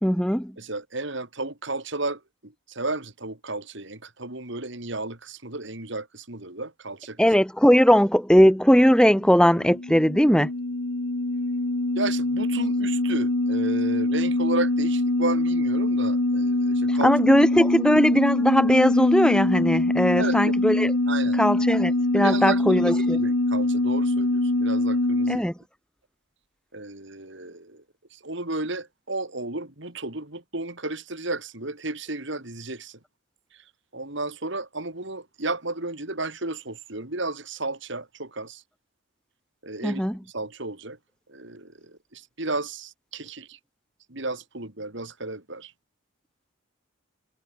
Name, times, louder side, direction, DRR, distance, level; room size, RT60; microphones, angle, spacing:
voice 1, 0.0-0.5 7.2-10.5 16.9-20.9 21.4-23.2 25.3-25.5 39.8-40.2, equal, 5° left, 2.0 m, -19 dB
voice 2, 0.6-7.2 11.9-17.1 20.1-20.6 21.1-21.4 22.1-25.4 26.7-27.8 28.1-33.0 33.5-33.6 33.9-38.6 39.6-40.1 40.3-41.0 41.3-43.6 44.1-45.7, right 2 dB, 55° right, 3.0 m, -33 dB
sound 1, 9.2-25.4, left 2 dB, 65° left, 1.4 m, -24 dB
head